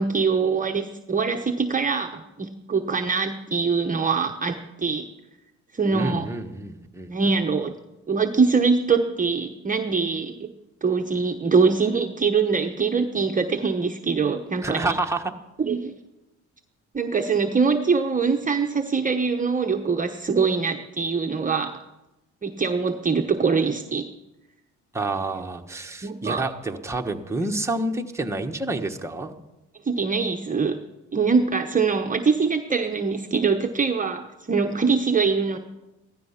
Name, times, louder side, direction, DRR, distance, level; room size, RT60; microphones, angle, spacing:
voice 1, 0.0-5.1 5.7-6.3 7.1-7.7 8.1-10.5 10.8-15.0 15.6-15.9 16.9-21.8 22.4-24.1 26.0-26.4 29.8-30.8 31.1-35.6, right 5 dB, 25° right, 4 dB, 0.9 m, -23 dB
voice 2, 5.9-7.1 14.6-15.2 24.9-29.3, right 2 dB, 10° right, 3 dB, 1.3 m, -28 dB
16.0 x 13.5 x 5.8 m, 0.99 s
cardioid pair, 90°, 30 cm